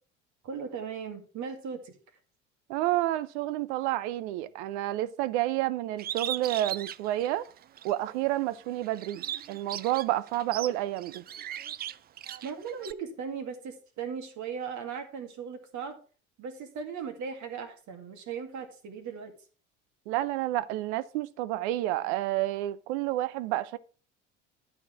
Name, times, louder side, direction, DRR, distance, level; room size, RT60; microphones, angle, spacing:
voice 1, 0.4-1.9 12.4-16.0 16.4-19.3, right 6 dB, 50° right, 2.2 m, -38 dB
voice 2, 2.7-7.4 7.8-11.2 20.1-23.8, right 15 dB, 65° right, 0.7 m, -30 dB
Bird, 6.0-8.0 8.4-12.9, right 11 dB, 25° right, 0.4 m, -38 dB
11.5 x 4.5 x 5.9 m
hypercardioid pair, 65°, 37 cm